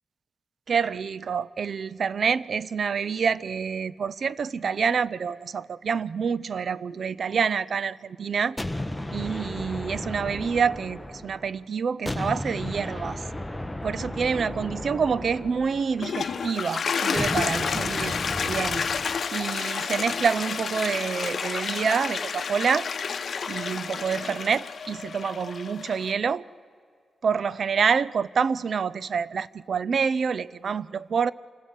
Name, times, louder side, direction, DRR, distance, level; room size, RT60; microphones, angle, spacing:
voice 1, 0.7-8.6 9.1-13.2 13.8-18.2 18.4-18.8 19.3-22.9 23.5-26.4 27.2-31.3, right 6 dB, 60° right, 0.5 m, -27 dB
sound 1, 8.6-11.6 12.1-16.3 17.2-19.3, left 1 dB, 10° left, 1.1 m, -34 dB
Toilet flush, 15.8-26.1, left 6 dB, 60° left, 1.0 m, -30 dB
27.0 x 15.5 x 8.3 m
cardioid pair, 85°, 0 cm